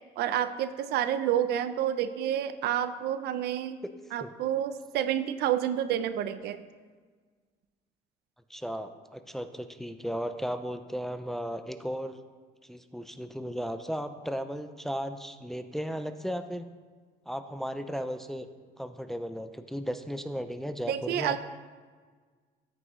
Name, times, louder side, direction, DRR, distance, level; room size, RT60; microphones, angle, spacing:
voice 1, 0.2-3.8 4.1-6.6 20.9-21.4, right 10 dB, 75° right, 11 dB, 0.5 m, -29 dB
voice 2, 8.5-12.2 12.6-16.7 17.3-18.5 18.8-21.4, equal, ahead, 9 dB, 0.5 m, -35 dB
14.0 x 6.2 x 3.1 m, 1.5 s
cardioid pair, 110°, 17 cm